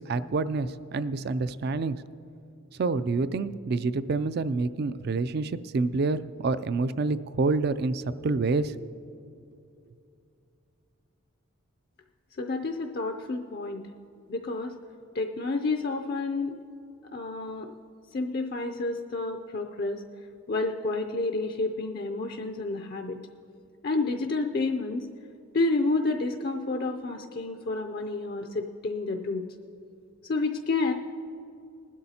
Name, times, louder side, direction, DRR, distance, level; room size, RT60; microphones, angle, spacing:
voice 1, 0.0-2.0 2.8-8.9, right 3 dB, 50° right, 14 dB, 0.3 m, -27 dB
voice 2, 12.4-13.8 14.3-14.7 15.1-16.6 17.1-17.7 18.1-20.0 20.5-23.2 23.8-25.1 25.5-29.5 30.2-30.9, left 3 dB, 45° left, 5 dB, 0.4 m, -29 dB
20.0 x 12.0 x 2.8 m, 2.6 s
head